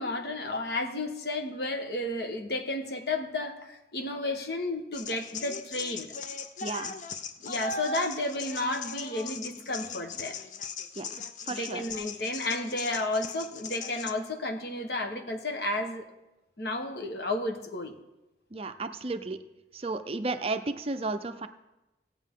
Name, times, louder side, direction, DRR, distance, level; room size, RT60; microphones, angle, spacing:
voice 1, 0.0-6.1 7.4-10.4 11.6-16.0 16.6-17.9, left 2 dB, 65° left, 5 dB, 1.2 m, -32 dB
sound 1, 4.9-14.1, left 5 dB, 45° left, 0.6 m, -39 dB
voice 2, 6.6-6.9 11.0-11.8 18.5-19.4 19.7-21.5, right 3 dB, 35° right, 9 dB, 0.5 m, -33 dB
17.5 x 8.2 x 3.7 m, 1.0 s
head